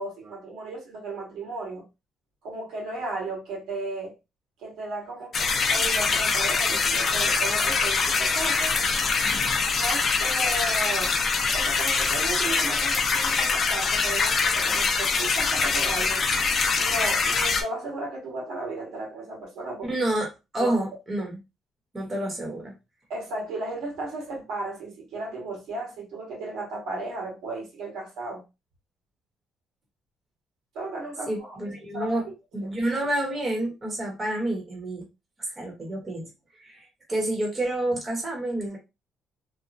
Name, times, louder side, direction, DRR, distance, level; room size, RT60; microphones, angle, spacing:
voice 1, 0.0-1.8 2.4-4.2 4.6-8.7 9.7-11.2 11.5-16.2 16.7-20.0 20.6-20.7 23.1-28.4 30.7-31.6 31.9-32.2 32.6-32.7, right 2 dB, 85° right, 1.5 m, -35 dB
sound 1, 5.3-17.6, left 4 dB, 40° left, 0.5 m, -24 dB
voice 2, 19.8-21.3 21.9-22.7 31.3-32.3 32.5-35.1 35.5-36.3 36.6-36.8 37.1-38.8, right 1 dB, 25° right, 1.0 m, -28 dB
3.0 x 2.2 x 2.5 m
cardioid pair, 130°, 0 cm